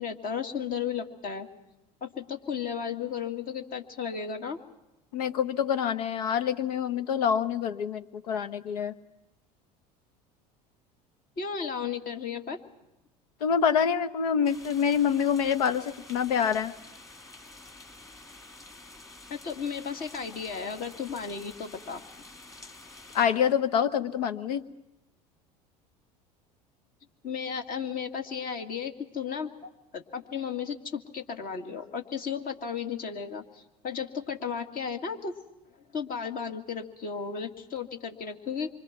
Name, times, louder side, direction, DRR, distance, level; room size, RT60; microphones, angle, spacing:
voice 1, 0.0-1.5 2.0-4.6 11.4-12.6 19.3-22.0 27.2-35.3 35.9-38.7, left 6 dB, 45° left, 5 dB, 2.3 m, -34 dB
voice 2, 5.1-8.9 13.4-16.7 23.1-24.6, left 7 dB, 70° left, 12 dB, 1.1 m, -26 dB
sound 1, 14.4-23.3, left 2 dB, 15° left, 2.6 m, -49 dB
26.0 x 25.0 x 6.1 m, 0.95 s
figure-of-eight pair, 70°, 21 cm